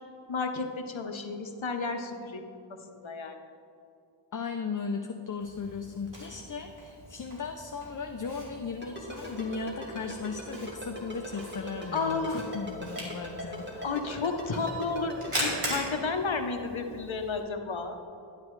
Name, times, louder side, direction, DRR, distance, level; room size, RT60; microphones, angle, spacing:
voice 1, 0.3-3.4 11.9-12.4 13.8-18.0, left 4 dB, 65° left, 5 dB, 0.9 m, -32 dB
voice 2, 4.3-13.8, left 5 dB, 40° left, 5 dB, 0.5 m, -37 dB
Camera, 5.4-17.4, equal, 75° right, 2.5 m, -41 dB
Ringtone, 8.8-15.6, left 1 dB, 20° right, 2.1 m, -39 dB
11.5 x 9.3 x 3.1 m, 2.6 s
wide cardioid pair, 50°, 50 cm